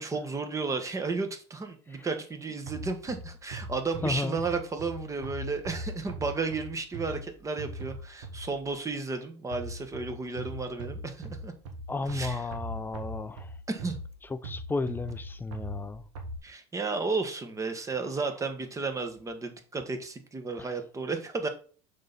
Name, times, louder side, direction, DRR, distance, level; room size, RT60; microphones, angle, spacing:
voice 1, 0.0-11.5 12.1-12.4 13.7-14.0 16.4-21.5, right 4 dB, 20° right, 1.5 m, -33 dB
sound 1, 2.7-8.7 9.5-16.4, right 1 dB, 85° right, 1.6 m, -41 dB
voice 2, 4.0-4.4 11.9-13.5 14.3-16.1 20.6-20.7, left 3 dB, 15° left, 0.6 m, -33 dB
6.5 x 5.3 x 4.2 m
supercardioid pair, 95°, 15 cm